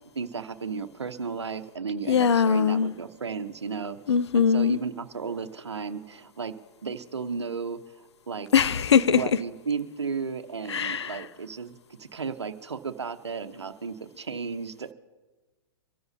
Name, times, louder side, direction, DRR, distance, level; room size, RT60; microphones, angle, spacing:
voice 1, 0.1-6.6 6.8-8.5 9.1-14.9, right 5 dB, 90° right, 0.9 m, -34 dB
voice 2, 2.1-2.9 4.1-4.8 8.5-9.2 10.7-11.2, left 7 dB, 80° left, 0.6 m, -21 dB
24.5 x 13.5 x 2.8 m
hypercardioid pair, 115°, 14 cm